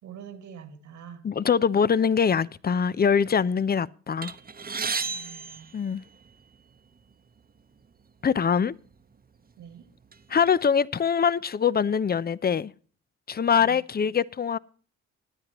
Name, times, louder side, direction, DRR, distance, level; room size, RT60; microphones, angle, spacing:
voice 1, 0.0-1.2 5.0-5.7 9.6-9.9 13.5-13.8, right 8 dB, 80° right, 2.3 m, -45 dB
voice 2, 1.2-4.3 5.7-6.0 8.2-8.7 10.3-12.7 13.3-14.6, left 7 dB, 35° left, 0.6 m, -23 dB
sound 1, 4.2-6.5 7.4-7.5 7.8-8.0 8.9-9.0 9.5-10.7, right 5 dB, 30° right, 1.0 m, -34 dB
18.0 x 10.0 x 3.0 m
supercardioid pair, 60°, 30 cm